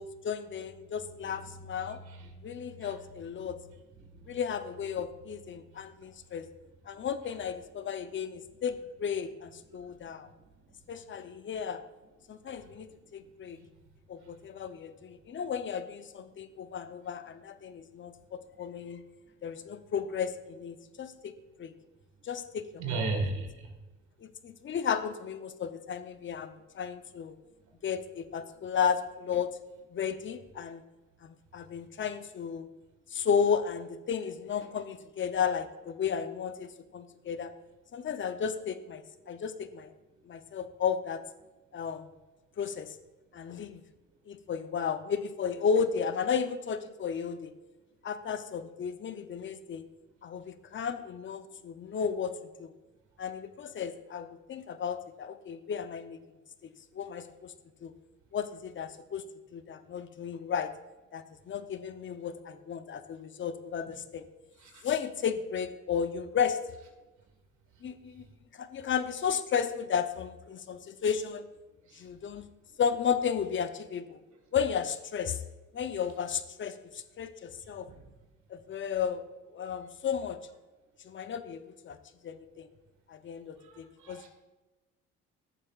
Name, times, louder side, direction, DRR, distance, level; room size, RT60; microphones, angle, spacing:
voice 1, 0.0-2.0 2.4-3.6 4.3-6.5 6.9-10.3 10.9-11.8 12.3-13.6 14.1-19.0 19.4-21.3 21.6-21.7 22.2-22.7 24.2-27.3 27.8-29.6 29.9-30.8 31.2-32.7 33.1-37.5 37.9-39.9 40.3-41.2 41.7-42.1 42.6-43.0 43.3-43.8 44.3-47.5 48.0-49.8 50.2-52.7 53.2-56.2 56.9-57.5 57.8-57.9 58.3-59.2 59.5-60.7 61.1-64.2 64.8-66.6 67.8-68.3 68.5-71.5 71.9-72.5 72.8-74.2 74.5-75.4 75.7-77.9 78.5-79.2 79.5-80.4 81.0-82.0 82.2-82.7 83.1-84.3, left 7 dB, 40° left, 11 dB, 0.7 m, -33 dB
voice 2, 1.2-3.0 3.4-3.6 4.0-4.4 5.7-6.2 7.3-7.4 9.7-11.0 12.5-12.7 13.6-13.8 14.2-14.4 22.8-23.7 64.6-64.8 71.8-72.1 77.6-78.0 83.6-84.3, right 3 dB, 70° right, 3 dB, 1.8 m, -40 dB
14.0 x 7.2 x 2.4 m, 1.1 s
cardioid pair, 85°, 30 cm